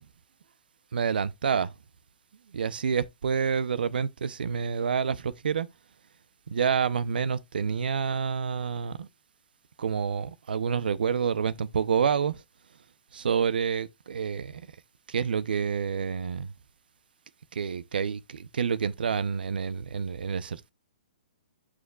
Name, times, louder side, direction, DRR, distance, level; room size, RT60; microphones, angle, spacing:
voice 1, 0.9-1.7 2.5-5.7 6.5-9.1 9.8-12.4 13.1-14.6 15.1-16.5 17.5-20.7, right 6 dB, 80° right, 0.7 m, -28 dB
12.5 x 4.9 x 2.4 m
hypercardioid pair, 165°, 5 cm